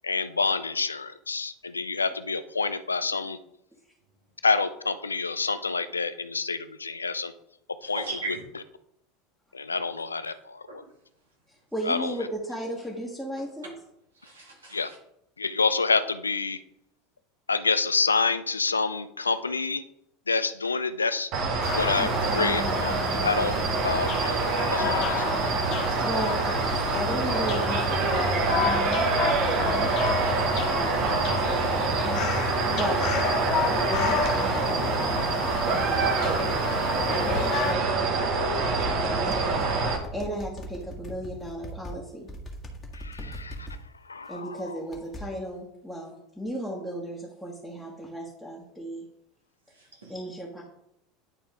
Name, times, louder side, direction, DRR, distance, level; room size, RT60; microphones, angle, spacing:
voice 1, 0.0-3.4 4.4-7.3 7.8-8.0 9.5-10.8 11.9-12.1 14.7-14.9 15.4-16.6 17.5-19.8 20.3-21.3 21.7-25.2 42.9-43.7 44.1-44.5, left 4 dB, 85° left, 12 dB, 0.4 m, -28 dB
voice 2, 7.8-8.4 10.7-10.8 14.2-15.0 38.8-38.9 49.8-50.1, right 3 dB, 80° right, -1 dB, 2.0 m, -38 dB
voice 3, 11.5-13.7 22.0-23.7 26.0-26.5 26.9-29.0 29.6-29.9 30.3-33.1 33.7-36.6 37.0-38.2 38.6-42.3 44.3-49.1 50.1-50.6, equal, ahead, -4 dB, 1.6 m, -36 dB
sound 1, 21.3-40.0, right 3 dB, 50° right, 1.2 m, -26 dB
sound 2, 21.6-37.7, left 7 dB, 50° left, 0.8 m, -32 dB
sound 3, 38.4-41.9 42.3-43.8 44.9-45.2, left 1 dB, 25° left, 1.6 m, -39 dB
9.9 x 4.2 x 3.6 m, 0.78 s
figure-of-eight pair, 75°, 0 cm